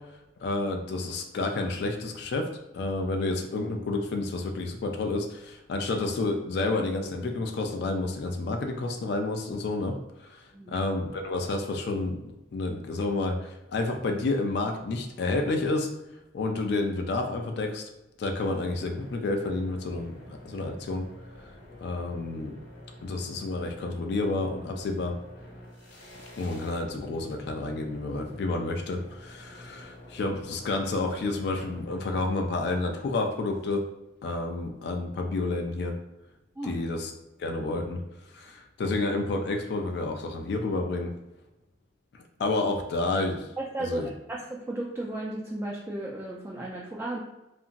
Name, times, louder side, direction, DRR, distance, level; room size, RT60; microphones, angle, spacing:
voice 1, 0.4-2.5 2.7-5.3 5.7-9.9 10.7-12.2 12.5-13.3 13.7-15.9 16.3-17.8 18.2-20.1 20.5-21.0 21.8-22.6 23.0-25.1 26.4-29.0 29.4-29.8 30.1-33.8 34.2-35.9 36.6-37.1 37.4-38.0 38.8-41.1 42.4-43.4 43.8-44.1, left 2 dB, 65° left, 4 dB, 0.3 m, -29 dB
sound 1, 18.3-32.8, equal, 80° left, 0.9 m, -48 dB
voice 2, 43.6-47.2, right 1 dB, 15° right, -3 dB, 0.3 m, -34 dB
2.8 x 2.5 x 2.5 m, 0.97 s
head